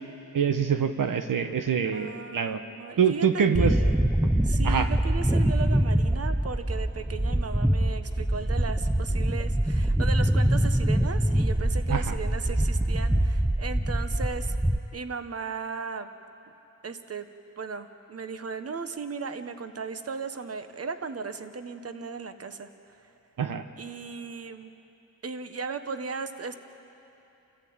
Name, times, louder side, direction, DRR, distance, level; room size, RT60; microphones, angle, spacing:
voice 1, 0.3-2.6 3.0-3.7 4.6-4.9 11.9-12.1 23.4-23.6, right 7 dB, 75° right, 7 dB, 1.0 m, -25 dB
voice 2, 1.9-4.0 4.4-14.5 14.9-16.1 16.8-17.3 17.6-22.7 23.8-24.7 25.2-26.6, right 5 dB, 45° right, 9 dB, 1.2 m, -36 dB
sound 1, 3.5-14.8, right 1 dB, 5° right, 0.5 m, -24 dB
29.0 x 14.5 x 8.7 m, 2.8 s
wide cardioid pair, 90°, 33 cm